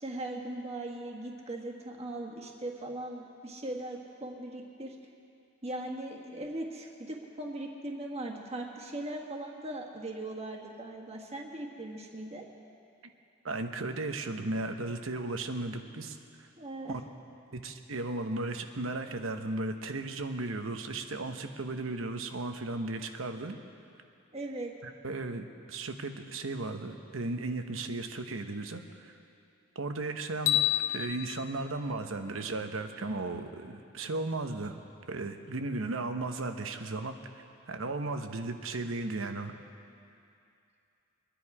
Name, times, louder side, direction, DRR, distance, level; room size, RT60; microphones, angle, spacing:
voice 1, 0.0-4.9 5.6-12.5 16.6-17.0 24.3-24.7, right 1 dB, 30° right, -1 dB, 1.6 m, -39 dB
voice 2, 13.4-16.2 16.9-17.0 17.5-23.6 24.8-29.1 29.7-30.6 30.9-34.8 35.1-39.5, right 2 dB, 85° right, 6 dB, 1.0 m, -35 dB
sound 1, 30.5-32.7, left 13 dB, 75° left, 0.7 m, -31 dB
24.0 x 10.0 x 4.9 m, 2.5 s
head